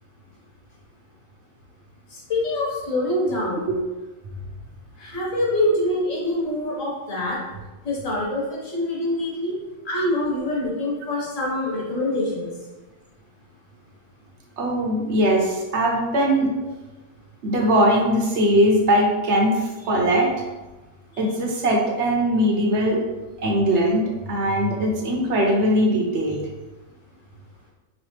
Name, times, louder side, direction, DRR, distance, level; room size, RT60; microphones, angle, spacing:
voice 1, 2.1-3.7 5.0-7.4 7.8-9.5 9.8-12.5, left 1 dB, 75° left, -5 dB, 1.7 m, -25 dB
voice 2, 14.6-16.5 17.4-20.3 21.2-23.0 23.4-26.4, equal, 65° right, 0 dB, 1.0 m, -20 dB
4.7 x 3.0 x 3.2 m, 1.2 s
omnidirectional pair, 1.3 m